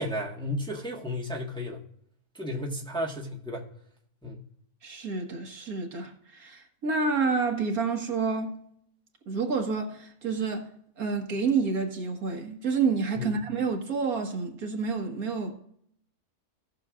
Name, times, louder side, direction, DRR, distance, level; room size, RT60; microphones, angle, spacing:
voice 1, 0.0-1.8 2.3-3.7 4.2-4.4 13.1-13.4, left 1 dB, 5° left, 1.3 m, -33 dB
voice 2, 4.8-8.6 9.3-10.7 11.0-15.5, right 4 dB, 70° right, 1.9 m, -29 dB
17.5 x 6.7 x 2.4 m
omnidirectional pair, 1.6 m